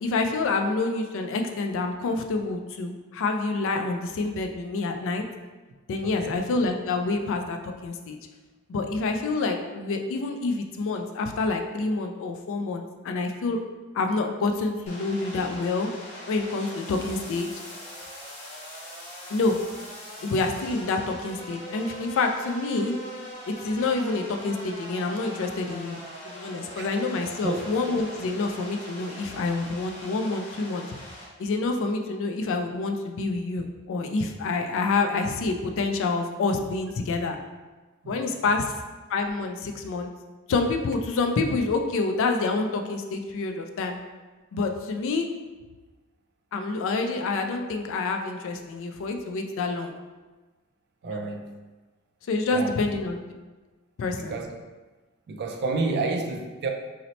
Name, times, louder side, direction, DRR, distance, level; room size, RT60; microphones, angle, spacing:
voice 1, 0.0-5.2 5.9-8.2 8.7-13.6 13.9-15.9 16.3-17.5 19.3-19.6 20.2-23.0 23.5-26.0 26.2-30.9 31.4-37.4 38.1-38.7 39.1-40.1 40.5-44.0 44.5-45.3 46.5-49.9 51.1-51.2 52.3-53.3 54.0-54.3, left 3 dB, 65° left, 4 dB, 0.3 m, -27 dB
sound 1, 14.9-31.3, equal, 35° left, 1.0 m, -42 dB
voice 2, 51.0-51.4 52.5-52.7 54.3-54.5 55.3-56.7, right 3 dB, 50° right, 3 dB, 0.4 m, -29 dB
2.8 x 2.0 x 4.0 m, 1.2 s
head